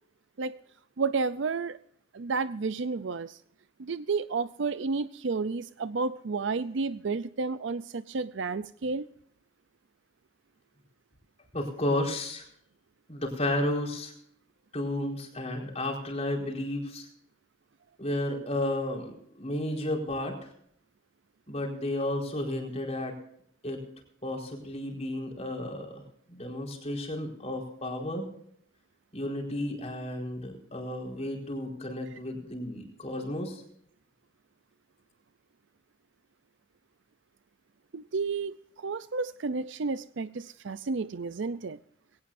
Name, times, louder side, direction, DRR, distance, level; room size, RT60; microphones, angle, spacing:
voice 1, 1.0-1.8 2.1-3.4 3.8-9.1 37.9-41.8, right 4 dB, 65° right, 14 dB, 0.5 m, -31 dB
voice 2, 11.5-12.5 13.1-14.1 14.7-17.1 18.0-20.5 21.5-23.1 23.6-23.8 24.2-26.0 26.3-28.3 29.1-33.6, left 1 dB, 30° left, 1 dB, 4.5 m, -32 dB
22.0 x 17.5 x 2.6 m, 0.67 s
head